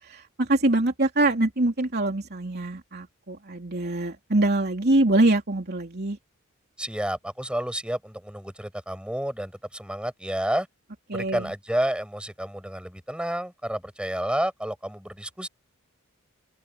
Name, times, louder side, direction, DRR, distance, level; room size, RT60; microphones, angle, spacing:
voice 1, 0.1-6.2 11.1-11.5, right 2 dB, 50° right, 3.2 m, -24 dB
voice 2, 6.8-10.7 11.1-15.5, right 1 dB, 5° right, 7.4 m, -30 dB
open air
head